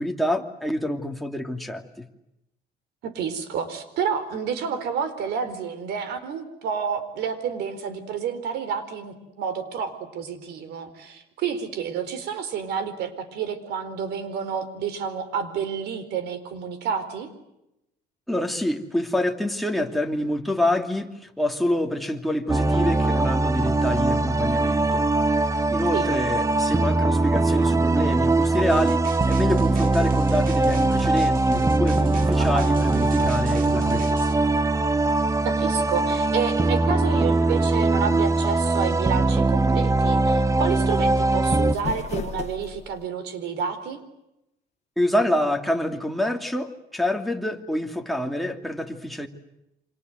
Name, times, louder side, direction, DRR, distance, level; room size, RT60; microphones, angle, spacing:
voice 1, 0.0-2.1 18.3-25.0 25.7-34.4 45.0-49.3, left 1 dB, ahead, 3 dB, 2.7 m, -27 dB
voice 2, 3.0-17.3 25.9-26.1 32.4-32.8 35.4-44.0, right 6 dB, 80° right, 12 dB, 4.2 m, -29 dB
sound 1, 22.5-41.8, right 2 dB, 20° right, 0.9 m, -21 dB
sound 2, 28.7-34.3, right 6 dB, 55° right, 2.3 m, -38 dB
sound 3, 41.4-43.1, left 7 dB, 40° left, 2.0 m, -34 dB
29.0 x 26.0 x 8.0 m, 0.88 s
cardioid pair, 110°, 17 cm